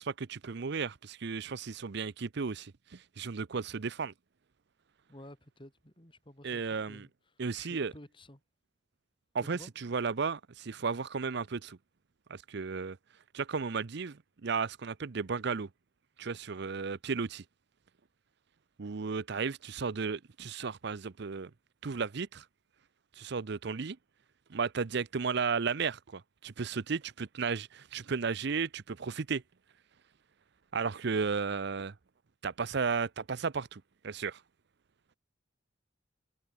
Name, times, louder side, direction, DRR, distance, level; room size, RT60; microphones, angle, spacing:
voice 1, 0.0-4.1 6.4-7.1 7.4-7.9 9.3-11.8 12.3-13.0 13.3-15.7 16.2-17.4 18.8-21.5 21.8-22.4 23.2-24.0 24.5-29.4 30.7-31.9 32.4-34.4, right 5 dB, 60° right, 0.6 m, -34 dB
voice 2, 5.1-7.1 7.5-8.4 9.5-9.7, left 1 dB, 25° left, 5.4 m, -52 dB
head